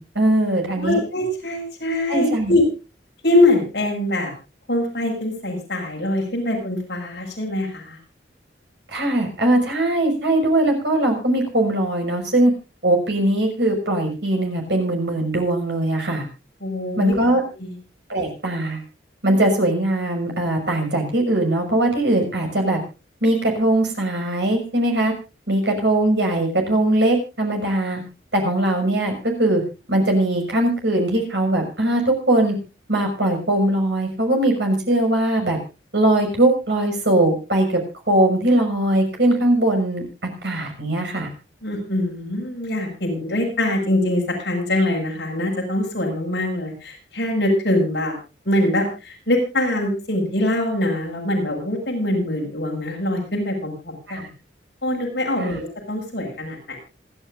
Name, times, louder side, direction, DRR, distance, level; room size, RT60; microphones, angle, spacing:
voice 1, 0.0-1.0 2.1-2.5 8.9-12.5 12.8-16.2 17.0-17.4 18.1-18.8 19.2-22.8 23.2-25.1 25.5-28.0 28.3-29.1 29.4-29.6 29.9-32.5 32.9-35.6 35.9-37.8 38.1-41.3 54.1-54.2 55.4-55.6, right 1 dB, 65° right, 3 dB, 6.1 m, -20 dB
voice 2, 0.8-2.6 3.2-4.3 4.7-8.0 16.6-17.2 17.5-17.8 41.6-48.2 48.4-54.3 54.8-56.6, left 1 dB, 60° left, 0 dB, 7.2 m, -23 dB
27.0 x 11.5 x 2.6 m, 0.31 s
head